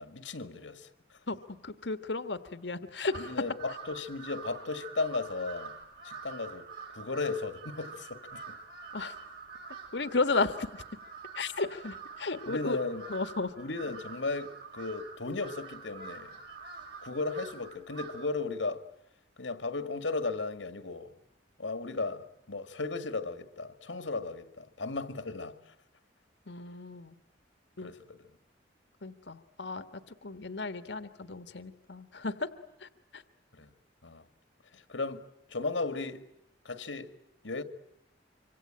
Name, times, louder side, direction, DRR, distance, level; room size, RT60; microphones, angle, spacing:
voice 1, 0.0-1.2 3.2-5.7 6.0-6.7 6.9-8.6 12.4-13.0 13.6-16.4 17.0-18.8 19.4-21.2 21.6-25.7 27.8-28.2 33.5-33.7 34.0-34.2 34.7-36.3 36.6-37.1 37.4-37.6, left 3 dB, 85° left, 2.1 m, -36 dB
voice 2, 1.3-3.4 8.9-9.1 9.9-10.8 11.3-12.8 13.1-13.5 26.5-27.2 27.8-27.9 29.0-32.5 32.8-33.2, left 3 dB, 70° left, 1.5 m, -34 dB
Crow, 3.0-18.4, right 5 dB, 65° right, 6.1 m, -46 dB
26.0 x 25.5 x 8.9 m
head